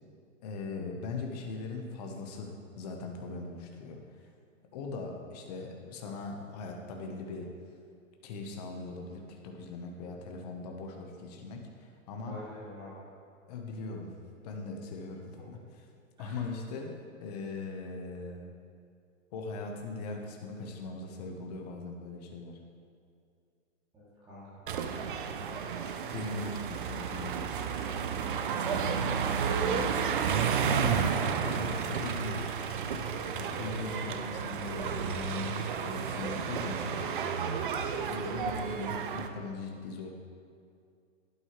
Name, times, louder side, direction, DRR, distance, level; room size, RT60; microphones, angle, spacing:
voice 1, 0.4-4.3 4.7-7.5 8.2-12.3 13.5-14.1 14.4-15.6 16.2-18.5 19.3-22.6 26.1-27.5 30.6-32.4 33.3-37.1 38.1-40.1, left 3 dB, 30° left, 2 dB, 1.2 m, -40 dB
voice 2, 12.3-13.0 16.2-16.4 23.9-25.7 28.5-30.4, left 1 dB, 10° right, -12 dB, 2.8 m, -47 dB
sound 1, 24.7-39.3, right 6 dB, 40° right, 0.6 m, -32 dB
11.5 x 11.0 x 3.3 m, 2.3 s
hypercardioid pair, 160°, 39 cm